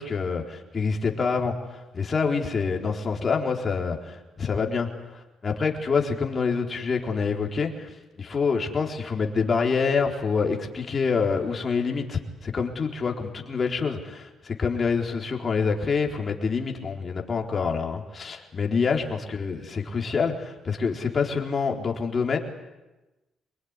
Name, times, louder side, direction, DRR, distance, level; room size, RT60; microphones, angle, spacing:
voice 1, 0.0-4.9 5.1-7.9 8.2-22.4, left 5 dB, 40° left, 2 dB, 4.1 m, -26 dB
25.0 x 21.0 x 9.8 m, 1.1 s
cardioid pair, 90°, 0 cm